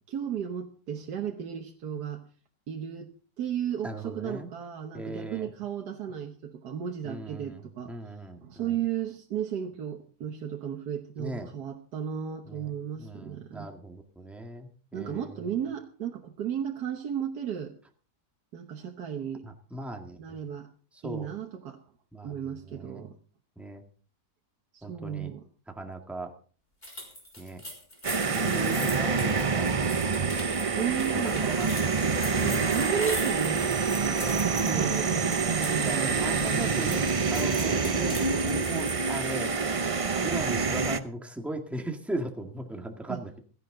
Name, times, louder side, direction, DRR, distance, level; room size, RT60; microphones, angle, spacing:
voice 1, 0.1-2.2 2.7-3.1 3.4-7.9 8.4-13.7 14.9-17.7 18.5-19.4 20.2-20.7 21.0-21.8 22.2-23.2 24.7-25.5 28.3-29.1 30.7-31.5 32.4-35.1 35.4-37.0 37.4-37.6 43.1-43.4, right 8 dB, 85° right, 3 dB, 1.7 m, -34 dB
voice 2, 3.8-4.5 4.9-5.5 7.0-8.7 11.2-11.5 12.5-12.7 13.0-15.4 19.4-20.4 21.0-21.3 22.1-22.4 22.7-23.1 23.6-23.8 24.8-25.3 25.7-26.3 27.4-27.6 28.3-30.1 31.1-32.8 35.8-39.5 40.2-43.3, right 1 dB, ahead, 3 dB, 1.8 m, -38 dB
sound 1, 26.8-35.9 36.2-39.1, left 1 dB, 25° left, 4.3 m, -41 dB
sound 2, 28.0-41.0, right 5 dB, 40° right, 0.5 m, -27 dB
16.5 x 15.0 x 3.8 m, 0.41 s
omnidirectional pair, 1.7 m